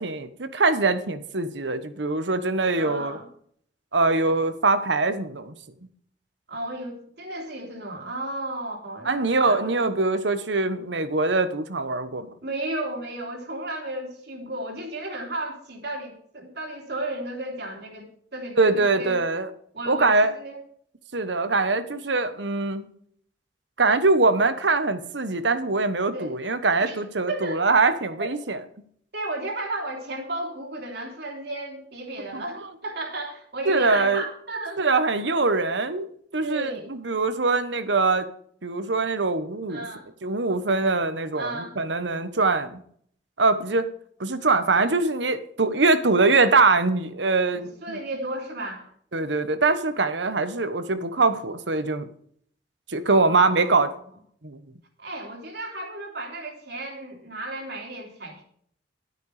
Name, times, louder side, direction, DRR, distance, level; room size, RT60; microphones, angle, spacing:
voice 1, 0.0-3.2 3.9-5.5 9.0-12.3 18.6-19.5 19.9-20.3 21.1-22.9 23.8-28.6 32.3-32.4 33.7-34.2 34.8-36.1 36.3-38.3 38.6-39.9 40.2-42.8 43.4-43.9 44.2-48.0 49.1-52.1 52.9-53.9 54.4-54.6, right 3 dB, 80° right, 11 dB, 1.2 m, -23 dB
voice 2, 2.7-3.3 6.5-9.8 12.4-19.2 19.7-20.6 26.1-26.3 26.8-27.6 28.2-28.3 29.1-34.8 36.4-37.0 39.7-40.1 41.4-41.8 47.5-48.8 53.1-53.9 55.0-58.4, right 2 dB, 60° right, 0 dB, 3.4 m, -34 dB
12.5 x 9.2 x 5.0 m, 0.62 s
head